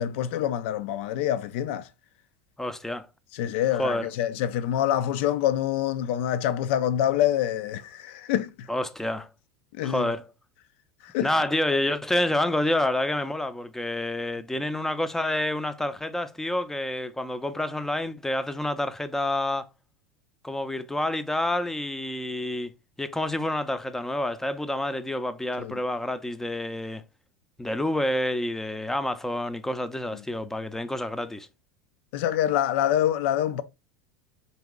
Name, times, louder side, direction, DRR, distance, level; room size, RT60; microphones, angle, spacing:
voice 1, 0.0-1.9 3.4-8.7 9.8-10.1 11.1-11.3 25.6-25.8 32.1-33.6, left 11 dB, 70° left, 0.5 m, -26 dB
voice 2, 2.6-3.1 3.7-4.1 8.7-9.3 9.8-10.3 11.2-19.7 20.4-27.0 27.6-31.5, left 1 dB, 5° left, 0.5 m, -28 dB
4.0 x 2.8 x 3.5 m
hypercardioid pair, 95°, 7 cm